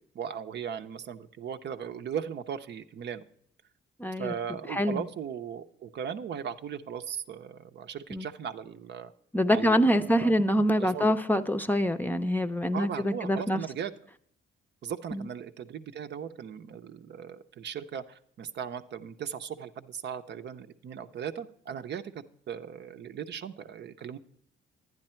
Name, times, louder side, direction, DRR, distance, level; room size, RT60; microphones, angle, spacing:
voice 1, 0.1-3.2 4.2-9.1 9.5-10.3 10.8-11.2 12.7-13.9 14.8-22.0 22.5-24.2, right 8 dB, 60° right, 9 dB, 0.7 m, -38 dB
voice 2, 4.0-4.3 4.7-5.0 8.1-8.3 9.3-13.6 15.1-15.2, equal, 10° left, 8 dB, 0.6 m, -25 dB
11.0 x 9.8 x 4.4 m, 0.63 s
cardioid pair, 90°, 20 cm